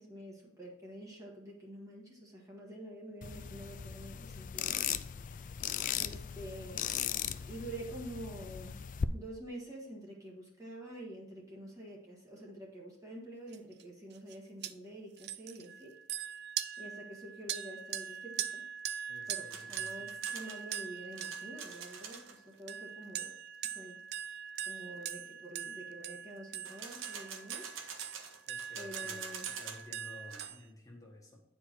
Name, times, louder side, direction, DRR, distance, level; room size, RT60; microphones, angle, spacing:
voice 1, 0.0-4.8 6.0-6.8 7.4-8.8 9.1-15.9 16.8-18.6 19.3-23.3 23.7-24.0 24.7-27.7 28.8-29.5, right 1 dB, 15° right, -3 dB, 1.5 m, -47 dB
sound 1, 3.2-9.0, left 9 dB, 40° left, 0.3 m, -38 dB
voice 2, 5.7-6.1 19.1-20.1 28.5-31.4, left 1 dB, 15° left, -2 dB, 1.6 m, -54 dB
sound 2, 13.5-13.8 14.1-14.3 14.6-14.7 15.2-22.2 22.7-30.6, right 9 dB, 55° right, 0.4 m, -42 dB
sound 3, 19.5-22.4 26.7-29.9 30.2-30.5, right 6 dB, 70° right, 1.1 m, -46 dB
9.8 x 4.7 x 4.5 m, 0.84 s
head